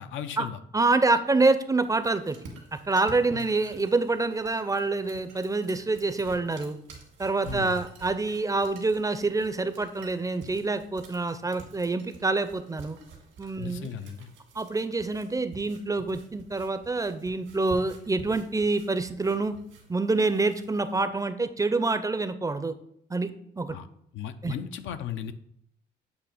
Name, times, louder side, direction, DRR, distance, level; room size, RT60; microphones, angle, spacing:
voice 1, 0.0-0.6 3.3-3.5 7.4-7.8 13.6-14.3 23.7-23.9 24.1-25.3, left 9 dB, 80° left, 10 dB, 0.5 m, -36 dB
voice 2, 0.7-2.4 2.7-6.8 7.2-13.0 13.4-13.9 14.6-19.5 19.9-22.7 23.1-23.3 23.6-23.8 24.4-24.5, right 3 dB, 15° right, 11 dB, 0.5 m, -26 dB
sound 1, 1.8-21.0, right 4 dB, 90° right, 1.9 m, -49 dB
8.4 x 2.8 x 5.0 m, 0.72 s
cardioid pair, 90°, 20 cm